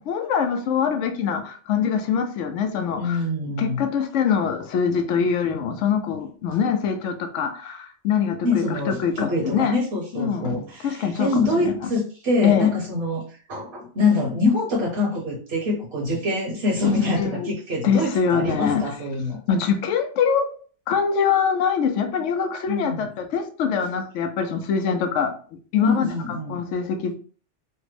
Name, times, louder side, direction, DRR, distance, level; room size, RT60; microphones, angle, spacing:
voice 1, 0.1-3.2 3.6-9.7 10.1-11.8 12.4-12.7 16.9-17.5 17.8-18.8 19.5-20.6 20.9-25.3 25.7-26.1 26.5-27.1, left 7 dB, 85° left, 0.9 m, -24 dB
voice 2, 3.0-3.9 8.4-13.2 13.5-19.4 22.7-23.1 25.8-26.6, left 3 dB, 65° right, 1.1 m, -25 dB
3.3 x 2.0 x 3.2 m
omnidirectional pair, 1.2 m